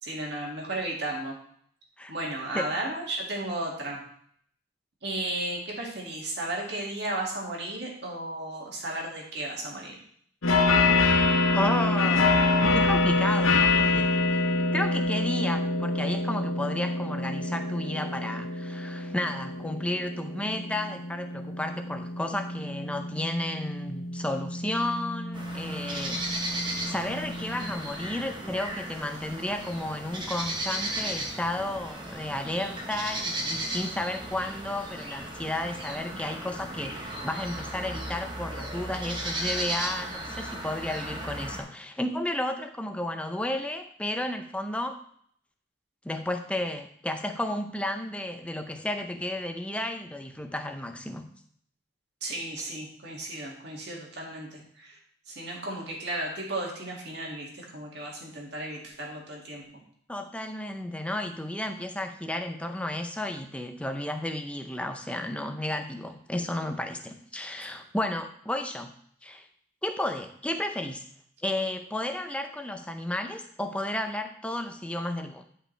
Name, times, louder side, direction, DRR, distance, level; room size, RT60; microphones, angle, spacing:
voice 1, 0.0-1.4 2.1-4.0 5.0-9.9 52.2-54.9 55.3-59.6, right 1 dB, 55° right, -2 dB, 2.2 m, -34 dB
sound 1, 10.4-27.7, left 3 dB, 80° left, 0.9 m, -27 dB
voice 2, 11.5-14.4 14.7-26.2 26.9-45.0 46.0-51.3 60.1-68.9 69.2-69.5 69.8-71.0 71.4-75.4, left 1 dB, 5° left, 6 dB, 0.5 m, -32 dB
sound 2, 25.3-41.6, right 1 dB, 25° right, 1.2 m, -35 dB
11.0 x 5.5 x 3.3 m, 0.63 s
head